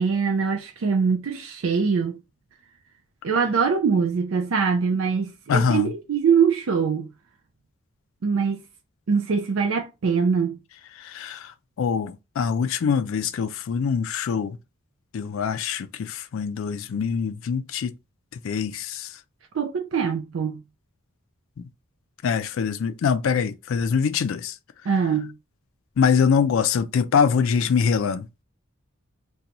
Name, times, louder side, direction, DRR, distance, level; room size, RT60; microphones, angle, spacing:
voice 1, 0.0-2.2 3.2-7.1 8.2-8.6 9.1-10.6 19.5-20.6 24.9-25.3, right 6 dB, 65° right, 0.4 m, -23 dB
voice 2, 5.5-5.9 11.0-11.5 11.8-14.6 15.1-17.9 18.4-19.1 22.2-24.5 26.0-28.3, left 6 dB, 65° left, 0.3 m, -23 dB
2.8 x 2.2 x 3.8 m
head